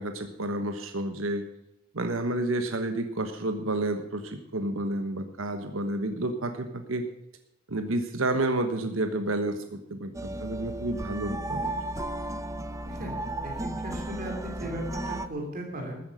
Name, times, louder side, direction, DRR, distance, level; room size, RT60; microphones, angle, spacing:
voice 1, 0.0-1.4 1.9-7.0 7.7-11.7, right 2 dB, 80° right, 7 dB, 1.2 m, -30 dB
sound 1, 10.1-15.3, right 1 dB, 15° right, 0.7 m, -34 dB
voice 2, 12.8-16.0, equal, 45° right, 1 dB, 3.2 m, -37 dB
14.0 x 9.8 x 6.5 m, 0.81 s
head